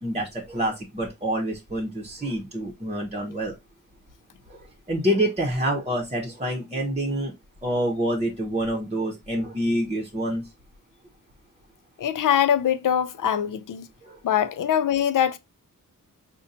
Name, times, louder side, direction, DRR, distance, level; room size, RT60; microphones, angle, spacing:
voice 1, 0.0-3.6 4.5-4.6 4.9-7.3 7.6-10.5 14.0-14.2, equal, 20° right, 0.8 m, -27 dB
voice 2, 12.0-13.9 14.2-15.4, left 9 dB, 75° left, 0.5 m, -23 dB
5.4 x 2.2 x 2.6 m
wide cardioid pair, 85°, 32 cm